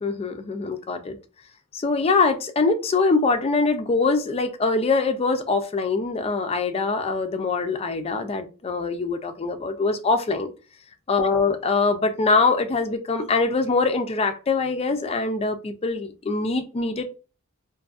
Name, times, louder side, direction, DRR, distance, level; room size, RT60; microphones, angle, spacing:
voice 1, 0.0-1.2 1.7-10.5 11.1-17.1, left 4 dB, 25° left, 8 dB, 0.3 m, -23 dB
2.6 x 2.5 x 2.3 m, 0.33 s
head